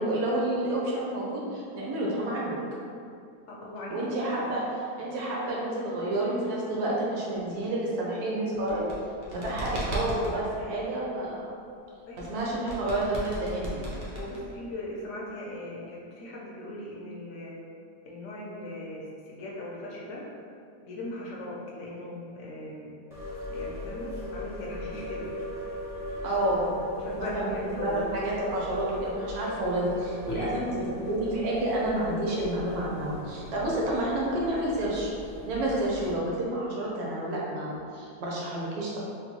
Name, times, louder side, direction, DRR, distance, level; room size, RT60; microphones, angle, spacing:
voice 1, 0.0-2.6 3.9-4.6 5.0-8.9 9.3-11.5 12.2-13.9 26.2-26.8 27.2-35.1 35.5-39.0, right 1 dB, 80° right, -4 dB, 1.2 m, -29 dB
voice 2, 3.5-4.5 12.1-12.5 14.1-17.6 18.0-20.3 20.8-23.0 23.5-25.3 27.0-28.2 30.3-30.6 31.1-31.2 33.5-33.7, left 1 dB, 65° left, -3 dB, 0.8 m, -39 dB
sound 1, 8.5-10.3 12.2-14.7, right 1 dB, 50° right, 0.6 m, -36 dB
sound 2, 23.1-36.1, left 1 dB, 5° right, 0.5 m, -38 dB
3.7 x 2.2 x 2.9 m, 2.5 s
omnidirectional pair, 1.6 m